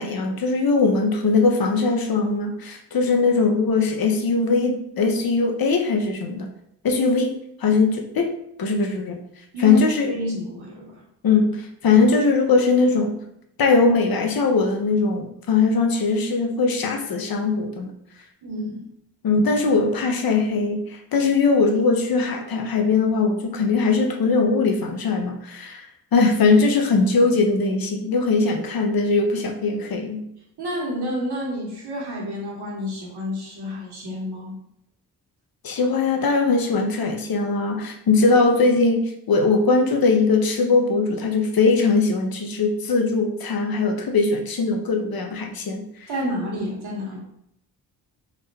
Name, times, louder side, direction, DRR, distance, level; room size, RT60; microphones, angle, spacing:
voice 1, 0.0-6.5 6.8-8.3 8.6-9.2 9.6-10.1 11.2-13.2 13.6-17.9 19.2-25.9 26.1-30.2 35.6-46.1, left 4 dB, 55° left, 4 dB, 0.7 m, -20 dB
voice 2, 9.5-11.0 18.4-18.9 30.6-34.6 46.1-47.2, equal, 65° right, -3 dB, 1.4 m, -29 dB
3.7 x 2.1 x 3.3 m, 0.77 s
supercardioid pair, 50°, 42 cm